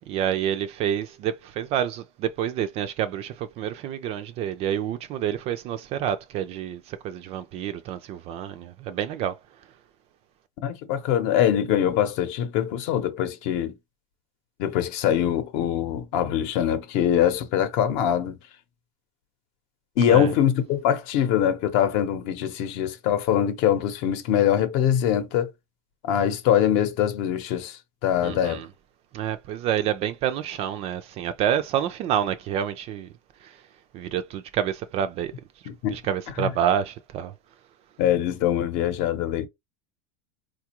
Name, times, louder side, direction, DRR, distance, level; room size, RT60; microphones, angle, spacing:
voice 1, 0.1-9.4 20.1-20.3 28.2-28.7 29.1-33.1 33.4-33.6 33.9-35.3 35.9-37.3, right 10 dB, 35° right, 0.4 m, -28 dB
voice 2, 10.6-13.7 14.6-18.4 20.0-25.5 26.0-28.7 35.7-36.0 36.4-36.5 38.0-39.5, left 10 dB, 50° left, 0.8 m, -23 dB
4.2 x 2.4 x 2.9 m
supercardioid pair, 145°, 18 cm